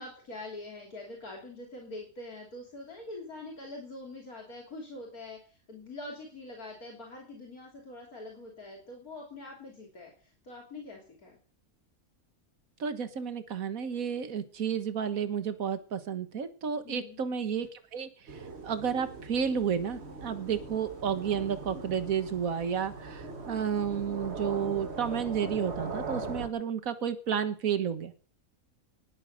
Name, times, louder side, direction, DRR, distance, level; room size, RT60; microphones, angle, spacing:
voice 1, 0.0-11.4 16.8-17.2, left 2 dB, 75° left, 0 dB, 3.5 m, -44 dB
voice 2, 12.8-28.1, right 7 dB, 70° right, 11 dB, 1.9 m, -31 dB
sound 1, 18.3-26.5, right 3 dB, 45° right, 2.0 m, -40 dB
19.5 x 9.0 x 6.5 m, 0.43 s
omnidirectional pair, 1.5 m